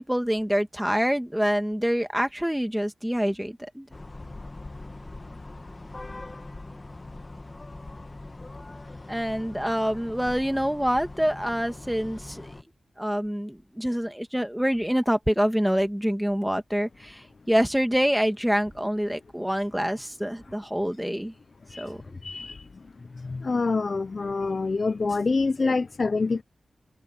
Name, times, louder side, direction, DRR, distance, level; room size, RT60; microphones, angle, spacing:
voice 1, 0.0-3.9 9.1-12.5 13.0-21.3 21.8-22.2 25.6-25.7, equal, 5° right, 2.3 m, -26 dB
sound 1, 3.9-12.6, left 2 dB, 30° left, 1.7 m, -42 dB
voice 2, 22.2-26.4, left 3 dB, 45° left, 0.6 m, -27 dB
wide cardioid pair, 80°, 0 cm